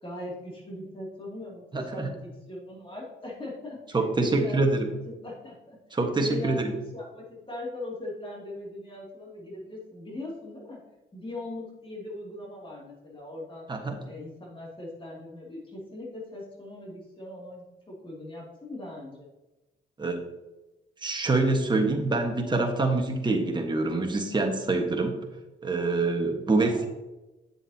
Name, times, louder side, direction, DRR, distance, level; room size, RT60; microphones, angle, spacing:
voice 1, 0.0-10.8 11.1-13.7 14.0-19.3 26.5-26.9, left 2 dB, 25° left, -4 dB, 2.6 m, -40 dB
voice 2, 1.7-2.1 3.9-4.9 5.9-6.7 13.7-14.0 20.0-20.2 21.0-25.2 25.6-26.9, right 3 dB, 20° right, 3 dB, 1.4 m, -25 dB
8.5 x 7.1 x 2.8 m, 1.0 s
cardioid pair, 90°, 20 cm